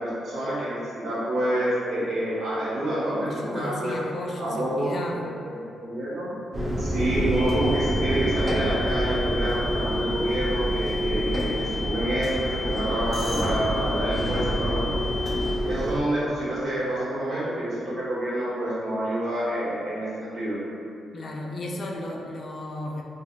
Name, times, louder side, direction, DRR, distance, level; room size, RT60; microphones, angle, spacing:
voice 1, 0.0-3.9 4.4-4.9 5.4-6.3 6.8-14.9 15.6-20.6, right 1 dB, 65° right, -9 dB, 1.1 m, -28 dB
voice 2, 3.2-5.2 21.1-23.0, left 1 dB, 50° left, 0 dB, 0.3 m, -34 dB
sound 1, 6.5-16.0, equal, 25° right, 0.6 m, -27 dB
sound 2, 7.3-15.6, left 4 dB, 10° left, 0.9 m, -35 dB
3.8 x 2.0 x 2.3 m, 2.5 s
cardioid pair, 90°, 0 cm